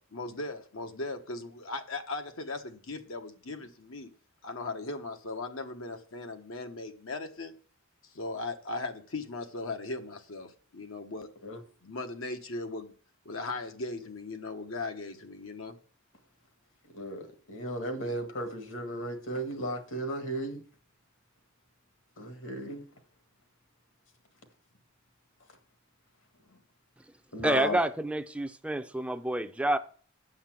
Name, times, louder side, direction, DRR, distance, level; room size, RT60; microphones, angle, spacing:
voice 1, 0.1-4.1 4.4-7.5 8.0-11.3 11.8-12.9 13.2-15.7, left 3 dB, 85° left, 1.3 m, -38 dB
voice 2, 17.0-20.6 22.2-22.8 27.3-27.8, equal, 70° left, 1.7 m, -35 dB
voice 3, 27.4-29.8, right 1 dB, 5° right, 0.4 m, -28 dB
9.4 x 5.7 x 7.6 m
head